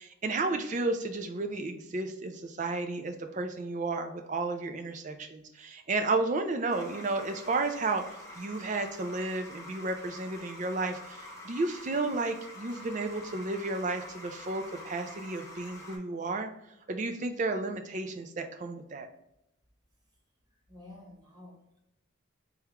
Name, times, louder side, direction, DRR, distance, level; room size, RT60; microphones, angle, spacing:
voice 1, 0.0-8.0 8.4-16.5 16.9-19.1, right 3 dB, 35° right, 5 dB, 0.4 m, -32 dB
sound 1, 6.7-16.0, left 1 dB, 15° left, 0.8 m, -47 dB
voice 2, 20.5-21.8, left 2 dB, 20° right, -2 dB, 0.8 m, -51 dB
3.5 x 3.5 x 2.9 m, 0.85 s
head